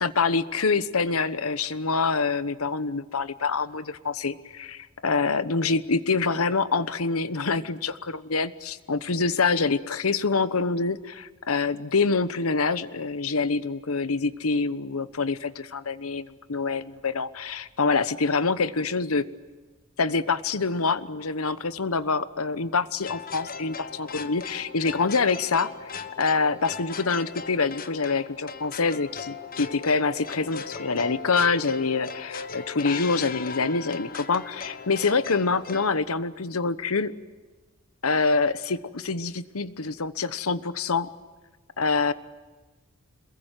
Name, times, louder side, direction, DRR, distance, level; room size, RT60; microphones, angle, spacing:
voice 1, 0.0-19.2 20.0-25.7 26.2-37.1 38.0-41.1 41.8-42.1, left 4 dB, 80° left, 15 dB, 1.1 m, -26 dB
sound 1, 23.0-35.9, left 5 dB, 40° left, 1.4 m, -38 dB
27.5 x 22.0 x 9.2 m, 1.3 s
head